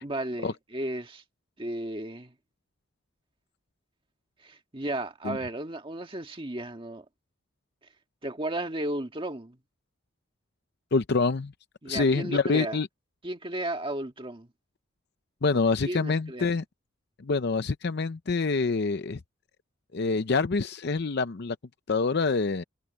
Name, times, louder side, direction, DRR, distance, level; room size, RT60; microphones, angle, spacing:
voice 1, 0.0-1.2 1.6-2.3 4.4-7.0 8.2-9.6 11.8-12.8 13.2-14.5 15.8-16.5, right 1 dB, 25° right, 1.7 m, -34 dB
voice 2, 10.9-11.5 11.9-12.9 15.4-16.6 17.2-19.2 19.9-21.6 21.9-22.6, left 4 dB, 55° left, 0.6 m, -26 dB
head